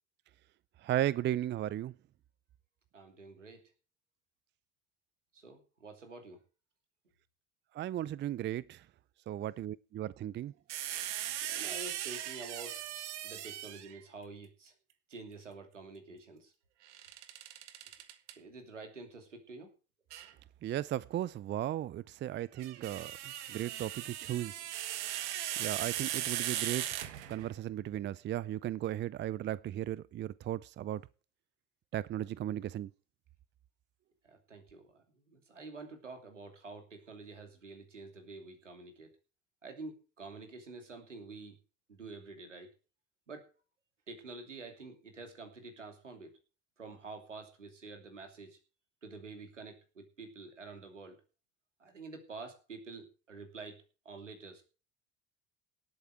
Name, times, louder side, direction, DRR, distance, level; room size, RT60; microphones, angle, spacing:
voice 1, 0.8-1.9 7.7-8.9 9.3-10.5 20.6-24.6 25.6-26.9 27.3-31.0 31.9-32.9, right 12 dB, 30° right, 0.5 m, -36 dB
voice 2, 2.9-3.6 5.3-6.4 11.4-12.9 13.2-14.7 15.1-16.5 18.4-19.7 34.2-39.2 39.6-41.6 41.9-42.7 43.3-43.5 44.1-46.4 46.8-48.6 49.0-51.2 51.8-54.6, right 3 dB, 90° right, 2.8 m, -48 dB
sound 1, 10.7-14.0 16.9-18.3 20.1-20.3 22.4-27.6, right 12 dB, 70° right, 1.4 m, -38 dB
18.0 x 8.4 x 4.7 m
figure-of-eight pair, 65°, 35 cm